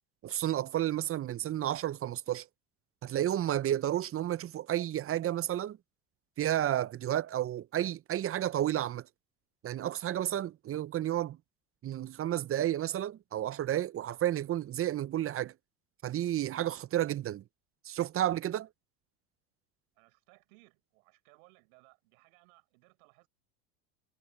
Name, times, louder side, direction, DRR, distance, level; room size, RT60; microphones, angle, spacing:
voice 1, 0.2-2.5 3.0-5.8 6.4-9.0 9.6-11.4 11.8-15.5 16.0-17.4 17.9-18.7, right 12 dB, 30° right, 0.6 m, -31 dB
voice 2, 20.0-23.3, right 30 dB, 75° right, 7.5 m, -63 dB
hypercardioid pair, 90°, 42 cm